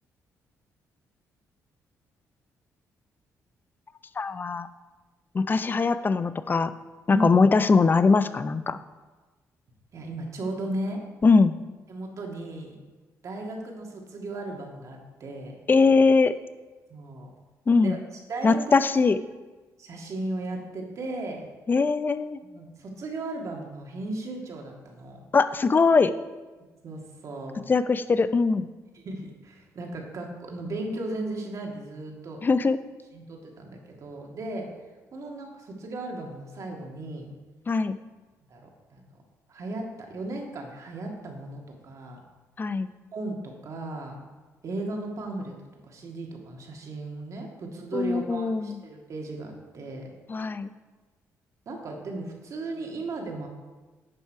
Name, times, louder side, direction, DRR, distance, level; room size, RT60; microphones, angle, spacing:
voice 1, 4.2-4.7 5.3-6.7 7.1-8.8 11.2-11.5 15.7-16.3 17.7-18.0 18.4-19.2 21.7-22.4 25.3-26.1 27.7-28.7 32.4-32.8 37.7-38.0 42.6-42.9 47.9-48.8 50.3-50.7, left 4 dB, 30° left, 12 dB, 0.5 m, -21 dB
voice 2, 9.9-11.0 11.9-12.7 13.2-15.5 16.9-17.3 17.8-18.6 19.8-21.5 22.5-25.2 26.8-27.6 28.9-32.4 33.1-34.7 35.1-37.3 38.5-39.0 39.5-42.2 43.1-44.2 44.6-45.5 45.9-50.1 51.7-53.5, right 2 dB, 55° right, 0 dB, 2.0 m, -36 dB
10.5 x 5.6 x 4.7 m, 1.3 s
cardioid pair, 80°, 6 cm